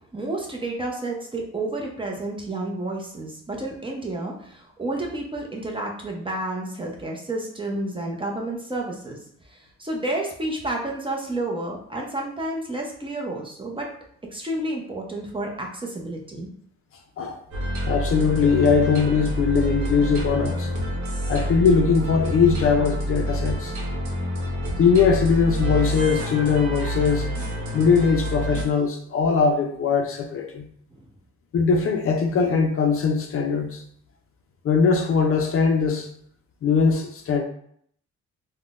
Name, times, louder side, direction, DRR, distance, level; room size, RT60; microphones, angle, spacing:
voice 1, 0.1-9.2 9.5-13.9 14.3-16.5 30.9-31.1, right 2 dB, 15° right, 0 dB, 0.7 m, -30 dB
sound 1, 17.5-28.6, equal, 70° right, 0.9 m, -27 dB
voice 2, 17.8-20.7 21.3-23.8 24.8-27.3 27.7-30.7 31.5-33.8 34.6-36.1 36.6-37.4, left 5 dB, 50° left, 4 dB, 0.5 m, -21 dB
3.6 x 2.1 x 2.4 m, 0.64 s
cardioid pair, 90°, 30 cm